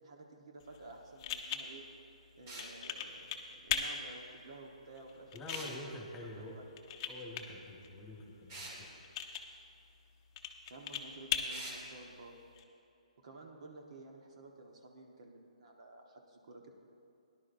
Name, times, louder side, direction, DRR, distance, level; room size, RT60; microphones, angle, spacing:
voice 1, 0.0-1.8 2.4-5.8 6.4-6.6 10.7-12.4 13.2-16.7, right 2 dB, 55° right, 1 dB, 1.5 m, -53 dB
sound 1, 0.6-12.6, left 8 dB, 30° left, 0.8 m, -42 dB
sound 2, 2.5-2.7 5.5-5.8 8.5-8.8 11.5-11.8, right 2 dB, 35° right, 2.3 m, -45 dB
voice 2, 5.3-6.6 7.0-9.0, left 1 dB, 10° left, -3 dB, 1.7 m, -47 dB
18.0 x 11.0 x 2.7 m, 2.7 s
hypercardioid pair, 155°, 4 cm